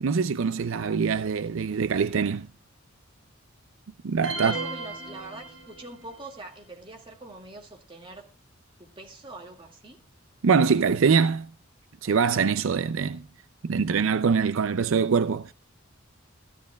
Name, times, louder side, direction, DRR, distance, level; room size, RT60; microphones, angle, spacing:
voice 1, 0.0-2.5 4.0-4.5 10.4-11.5 12.0-13.2 13.6-15.5, right 5 dB, 75° right, 0.5 m, -23 dB
sound 1, 4.2-6.1, right 3 dB, 60° right, 5.4 m, -35 dB
voice 2, 4.3-8.3 8.8-10.0, right 2 dB, 25° right, 2.1 m, -43 dB
15.5 x 13.5 x 2.3 m
head